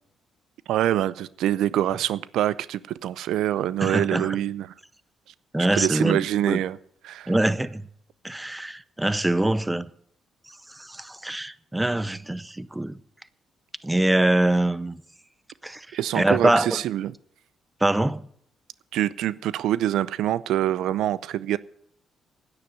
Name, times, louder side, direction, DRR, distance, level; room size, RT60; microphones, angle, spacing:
voice 1, 0.7-4.7 5.7-6.8 7.0-7.3 15.9-17.1 18.9-21.6, right 12 dB, 85° right, 0.5 m, -25 dB
voice 2, 3.8-4.4 5.5-6.6 7.3-7.8 8.2-9.9 10.8-13.0 13.8-15.0 15.6-15.9 16.1-16.8 17.8-18.2, right 1 dB, 10° right, 0.7 m, -24 dB
9.9 x 9.9 x 9.3 m
cardioid pair, 90°, 0 cm